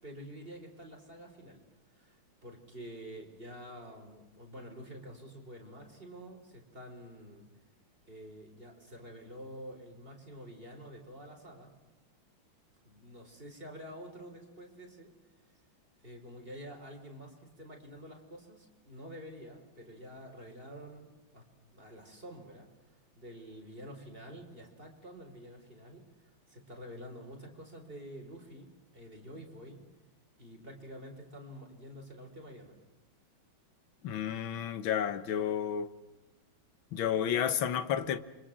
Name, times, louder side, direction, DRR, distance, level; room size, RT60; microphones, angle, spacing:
voice 1, 0.0-7.5 8.0-11.7 12.8-15.1 15.4-15.6 16.0-29.8 30.4-32.8, equal, 25° right, 4.9 m, -48 dB
voice 2, 34.0-35.9 36.9-38.2, left 9 dB, 80° left, 2.0 m, -31 dB
29.0 x 25.0 x 7.5 m
omnidirectional pair, 2.1 m